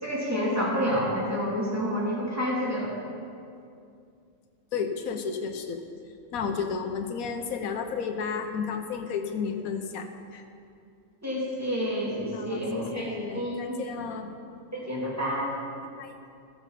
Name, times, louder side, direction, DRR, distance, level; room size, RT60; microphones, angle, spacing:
voice 1, 0.0-2.9 11.2-13.1 13.3-13.8 14.7-15.5, equal, 10° right, -6 dB, 2.7 m, -29 dB
voice 2, 4.7-5.8 6.3-10.4 12.3-14.3 16.0-16.1, left 6 dB, 85° left, 5 dB, 1.3 m, -32 dB
15.5 x 7.1 x 5.7 m, 2.5 s
omnidirectional pair, 1.4 m